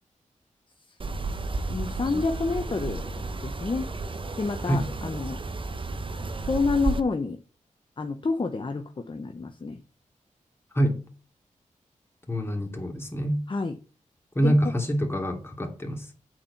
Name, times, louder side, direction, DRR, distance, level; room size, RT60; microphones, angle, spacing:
sound 1, 1.0-7.0, right 3 dB, 40° right, 0.9 m, -32 dB
voice 1, 1.7-3.9 4.4-5.4 6.5-7.4 8.0-9.8 13.5-13.8 14.4-14.5, left 4 dB, 40° left, 6 dB, 0.9 m, -28 dB
voice 2, 12.3-13.4 14.3-16.1, equal, 15° left, 2 dB, 2.7 m, -26 dB
8.5 x 4.5 x 7.1 m, 0.37 s
cardioid pair, 70°, 14 cm